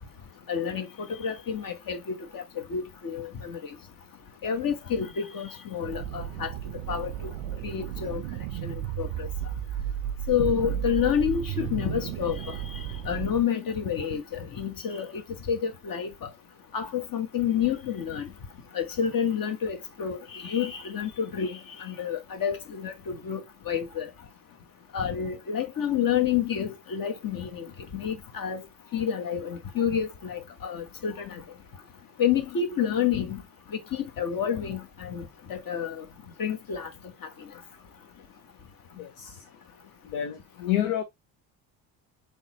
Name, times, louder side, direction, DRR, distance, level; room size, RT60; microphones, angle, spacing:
voice 1, 0.5-2.4 2.7-3.8 4.4-6.5 6.9-7.3 7.6-8.2 8.6-9.3 10.3-12.8 13.0-15.2 15.5-16.3 16.7-18.3 18.7-24.1 24.9-28.6 28.9-31.4 32.2-33.4 33.7-36.0 36.4-36.9, left 8 dB, 45° left, 1.2 m, -29 dB
sound 1, 5.8-13.4, right 11 dB, 85° right, 0.5 m, -34 dB
voice 2, 39.0-39.4 40.0-41.0, left 11 dB, 70° left, 0.9 m, -29 dB
3.7 x 3.2 x 2.9 m
hypercardioid pair, 65°, 47 cm